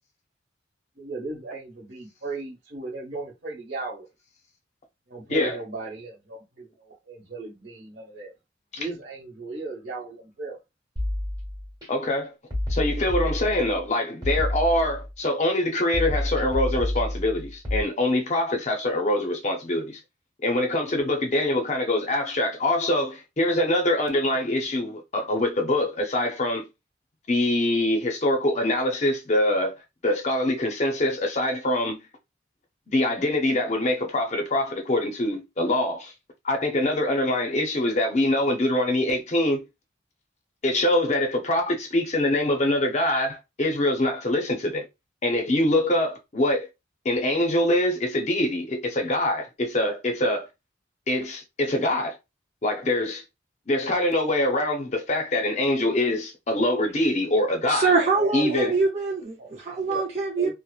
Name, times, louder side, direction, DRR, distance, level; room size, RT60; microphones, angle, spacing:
voice 1, 1.0-4.1 5.1-8.3 8.8-10.6 58.0-58.9 59.4-59.5 59.9-60.1 60.4-60.5, right 3 dB, 65° right, 1.2 m, -36 dB
sound 1, 11.0-11.9 12.5-13.9 14.2-15.3 15.9-17.8, left 1 dB, 20° right, 1.2 m, -29 dB
voice 2, 11.9-12.3 12.7-20.0 20.4-26.7 27.3-29.7 30.0-32.0 32.9-36.1 36.4-39.6 40.6-44.9 45.2-46.7 47.0-50.5 51.1-52.1 52.6-53.2 53.7-57.9 58.3-58.7, left 1 dB, 35° left, 0.5 m, -24 dB
voice 3, 57.7-60.5, right 4 dB, 35° right, 0.5 m, -24 dB
2.8 x 2.0 x 2.3 m
head